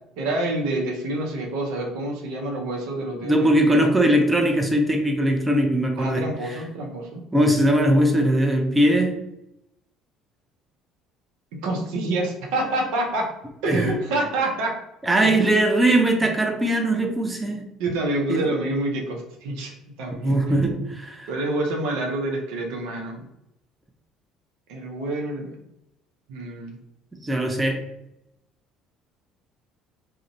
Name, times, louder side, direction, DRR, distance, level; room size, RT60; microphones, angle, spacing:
voice 1, 0.2-3.8 6.0-7.2 11.5-13.3 13.6-14.8 15.2-15.3 17.8-19.7 20.0-20.8 21.3-23.2 24.7-25.6 26.3-26.8, right 2 dB, 75° right, 1 dB, 0.5 m, -27 dB
voice 2, 3.2-6.6 7.3-9.2 13.7-13.9 15.0-17.7 18.3-18.5 20.2-21.3 27.2-27.8, right 1 dB, 15° right, 3 dB, 0.5 m, -20 dB
2.4 x 2.1 x 2.6 m, 0.84 s
hypercardioid pair, 65°, 0 cm